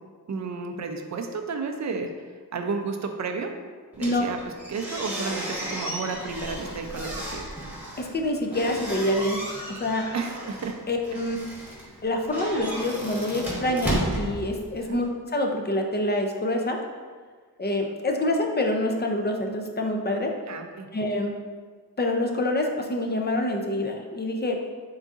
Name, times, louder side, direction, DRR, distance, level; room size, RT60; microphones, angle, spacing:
voice 1, 0.3-2.1 2.5-3.5 4.0-4.4 4.7-7.5 10.1-10.8 14.8-15.0 20.5-20.9, right 4 dB, 45° right, 5 dB, 0.4 m, -32 dB
sound 1, 3.9-15.1, right 1 dB, 5° right, 1.0 m, -34 dB
voice 2, 8.0-9.4 9.7-10.1 10.9-11.4 12.0-16.8 17.6-20.3 20.9-21.3 22.0-24.6, left 1 dB, 25° left, 2 dB, 0.4 m, -26 dB
3.8 x 3.6 x 2.4 m, 1.5 s
wide cardioid pair, 75°, 39 cm